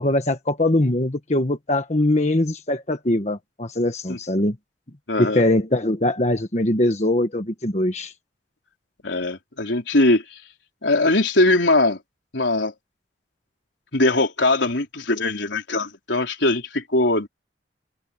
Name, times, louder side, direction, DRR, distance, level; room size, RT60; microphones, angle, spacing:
voice 1, 0.0-4.5 5.2-8.1, left 1 dB, 40° left, 1.5 m, -22 dB
voice 2, 5.1-5.4 9.0-10.2 10.8-12.0 12.3-12.7 13.9-17.3, left 2 dB, 90° left, 4.0 m, -21 dB
head